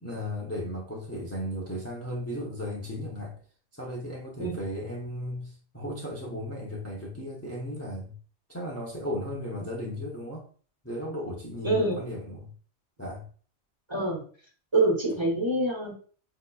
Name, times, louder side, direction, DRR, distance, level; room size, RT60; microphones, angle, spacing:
voice 1, 0.0-3.4 3.7-8.2 8.5-10.5 10.8-12.5 13.0-13.3, left 1 dB, 15° left, -4 dB, 0.6 m, -35 dB
voice 2, 11.6-12.0 13.9-14.2 14.7-15.9, right 2 dB, 30° right, -3 dB, 0.8 m, -25 dB
4.2 x 2.8 x 2.2 m, 0.43 s
omnidirectional pair, 1.1 m